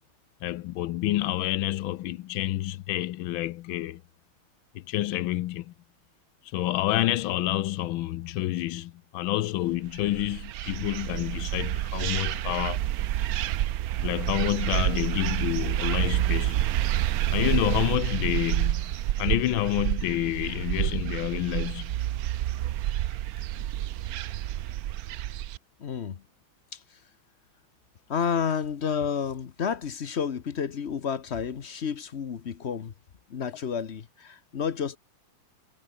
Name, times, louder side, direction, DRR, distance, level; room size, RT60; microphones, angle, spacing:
voice 1, 0.4-4.0 4.7-5.7 6.5-12.8 14.0-16.6 17.3-18.8 19.2-21.9 23.6-23.7, left 15 dB, 75° left, 1.4 m, -28 dB
sound 1, 9.9-25.6, right 13 dB, 75° right, 0.8 m, -28 dB
voice 2, 25.8-26.2 26.7-27.0 28.1-32.9 33.3-35.0, left 7 dB, 45° left, 0.9 m, -30 dB
omnidirectional pair, 2.3 m